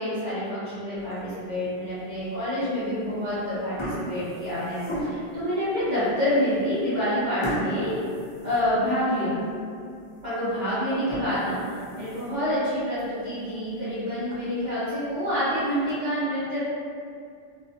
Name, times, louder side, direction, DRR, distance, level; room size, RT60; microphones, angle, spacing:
voice 1, 0.0-8.0 8.4-9.4 10.2-11.7 11.9-16.6, equal, 45° right, -14 dB, 0.9 m, -27 dB
sound 1, 1.0-1.5 2.1-2.2 3.0-3.3 3.6-5.4 6.0-6.1 6.5-6.6 7.4-9.2 9.6-9.7 10.2-10.3 10.9-12.5 13.0-13.1 13.5-13.6 13.9-14.0 14.3-14.4 15.3-15.9, equal, 45° left, 0.3 m, -35 dB
2.6 x 2.3 x 2.6 m, 2.3 s
omnidirectional pair, 1.1 m